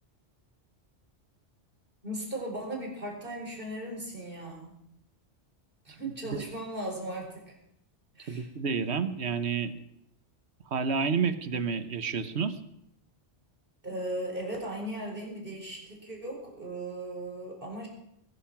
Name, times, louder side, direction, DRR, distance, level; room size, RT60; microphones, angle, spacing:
voice 1, 2.0-4.7 5.8-7.6 8.1-8.5 13.8-17.9, right 1 dB, 50° right, 0 dB, 4.9 m, -37 dB
voice 2, 8.3-9.7 10.7-12.6, right 5 dB, 65° right, 11 dB, 1.4 m, -29 dB
20.0 x 12.0 x 6.0 m, 0.77 s
omnidirectional pair, 1.2 m